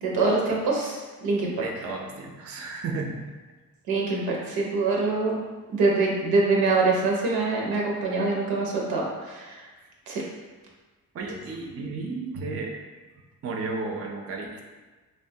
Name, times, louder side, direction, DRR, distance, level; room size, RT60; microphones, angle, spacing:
voice 1, 0.0-1.5 3.9-5.4 5.7-9.6 10.1-10.2, right 3 dB, 90° right, -2 dB, 0.7 m, -24 dB
voice 2, 1.6-3.2 4.1-4.4 11.1-12.8 13.4-14.6, right 3 dB, 40° right, 1 dB, 0.5 m, -33 dB
3.0 x 2.2 x 2.6 m, 1.3 s
cardioid pair, 65°, 37 cm